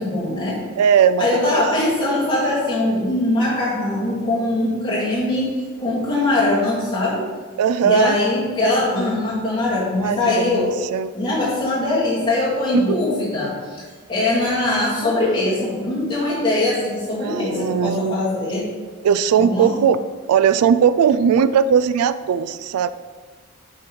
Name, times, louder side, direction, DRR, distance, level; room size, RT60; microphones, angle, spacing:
voice 1, 0.0-0.6 1.2-7.2 7.8-10.8 11.1-13.8 14.1-18.7 19.4-19.7, left 2 dB, 20° left, -7 dB, 2.1 m, -21 dB
voice 2, 0.8-1.6 7.6-8.2 10.0-11.1 12.7-13.0 17.2-18.2 19.0-20.0 20.3-22.9, right 7 dB, 85° right, 14 dB, 0.3 m, -18 dB
6.4 x 4.6 x 5.4 m, 1.4 s
head